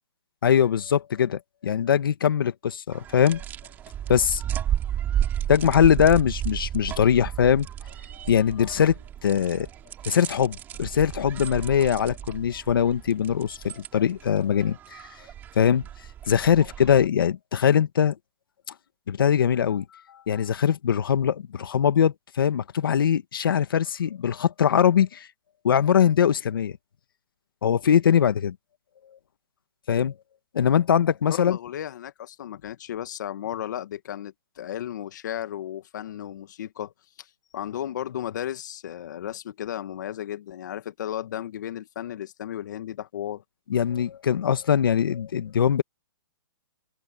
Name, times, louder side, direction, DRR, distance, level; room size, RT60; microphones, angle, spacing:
voice 1, 0.4-3.4 4.1-4.4 5.5-7.7 8.2-9.7 10.0-15.0 15.5-15.8 16.3-18.1 19.1-19.8 20.3-25.3 25.6-26.8 27.6-28.5 29.9-30.1 30.5-31.6 43.7-45.8, left 8 dB, 70° left, 1.7 m, -22 dB
sound 1, 2.9-17.1, right 10 dB, 15° right, 3.6 m, -33 dB
voice 2, 31.3-36.9 37.2-43.4, left 11 dB, 55° left, 1.6 m, -34 dB
hypercardioid pair, 160°, 12 cm